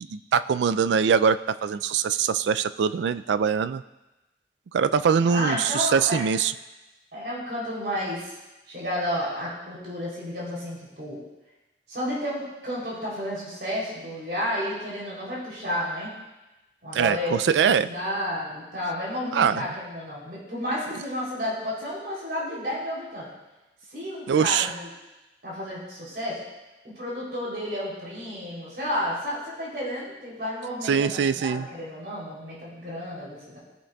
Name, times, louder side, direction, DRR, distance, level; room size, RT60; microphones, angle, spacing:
voice 1, 0.0-3.8 4.7-6.5 16.9-17.9 19.3-19.6 24.3-24.7 30.9-31.7, right 6 dB, 90° right, 14 dB, 0.3 m, -23 dB
voice 2, 5.2-6.3 7.1-8.3 8.7-11.2 11.9-16.1 16.8-23.3 23.9-24.9 25.4-26.4 26.8-33.6, equal, 65° right, -6 dB, 3.2 m, -31 dB
17.0 x 6.4 x 2.3 m, 1.1 s
head